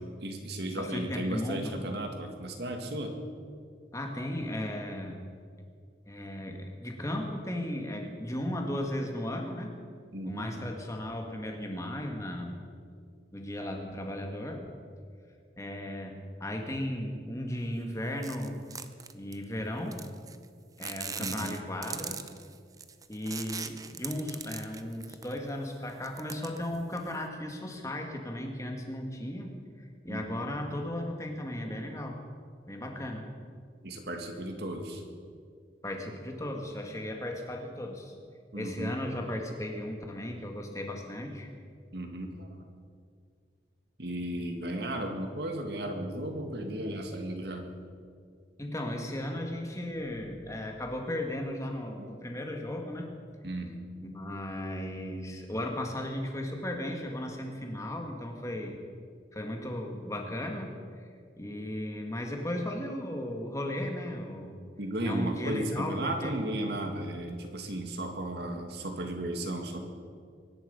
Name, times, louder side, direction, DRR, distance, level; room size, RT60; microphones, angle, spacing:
voice 1, 0.2-3.2 10.1-10.5 21.2-21.5 30.1-30.4 33.8-35.0 38.5-39.0 41.9-42.5 44.0-47.6 52.0-52.1 53.4-53.7 64.8-69.8, right 1 dB, 60° right, 4 dB, 2.1 m, -35 dB
voice 2, 0.8-1.7 3.9-5.2 6.1-9.7 10.2-12.6 13.3-14.7 15.6-16.1 16.4-18.6 19.1-20.0 20.8-22.2 23.1-29.5 29.8-32.2 32.7-33.3 35.8-38.1 38.6-41.5 48.6-53.1 54.0-58.8 59.3-61.1 61.4-64.6 65.0-66.4, left 1 dB, 15° left, 2 dB, 1.9 m, -36 dB
sound 1, 18.2-19.4 19.9-20.5 20.8-25.5 25.9-27.2, right 6 dB, 20° right, 0.6 m, -40 dB
24.0 x 11.0 x 5.5 m, 2.1 s
head